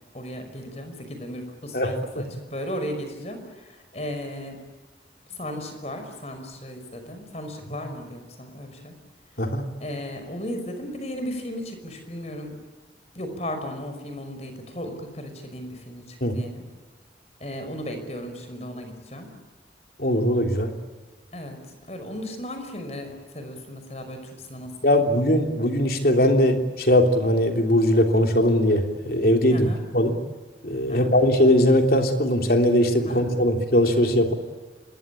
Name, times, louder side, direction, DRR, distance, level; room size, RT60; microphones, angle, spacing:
voice 1, 0.1-4.6 5.3-8.9 9.8-12.6 13.2-16.6 17.4-19.3 21.3-25.0 29.5-29.8 30.9-31.1 33.0-33.3, equal, 40° left, 7 dB, 5.4 m, -35 dB
voice 2, 20.0-20.7 24.8-29.7 29.9-30.2 30.6-34.3, left 1 dB, 55° left, 4 dB, 3.2 m, -20 dB
26.5 x 21.0 x 8.8 m, 1.3 s
head